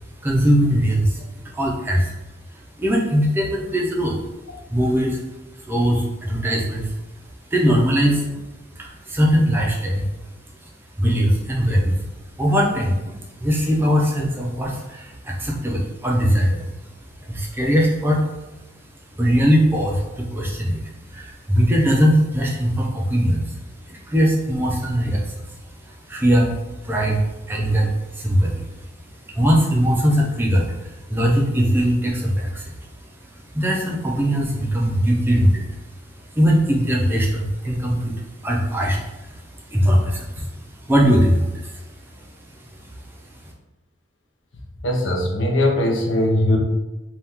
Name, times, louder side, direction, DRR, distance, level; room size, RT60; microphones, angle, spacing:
voice 1, 0.2-2.1 2.5-4.2 4.7-5.2 5.6-6.9 7.5-8.4 8.8-10.1 10.6-10.7 11.0-12.0 12.4-16.7 17.2-18.2 19.2-23.6 23.9-25.5 25.9-26.5 26.8-28.7 29.3-32.7 33.5-35.7 36.3-40.5 40.8-41.8 42.1-42.2 42.7-42.8, equal, 10° right, -2 dB, 0.4 m, -20 dB
voice 2, 44.8-46.6, left 1 dB, 75° left, 1 dB, 0.6 m, -20 dB
2.8 x 2.3 x 3.4 m, 1.0 s
head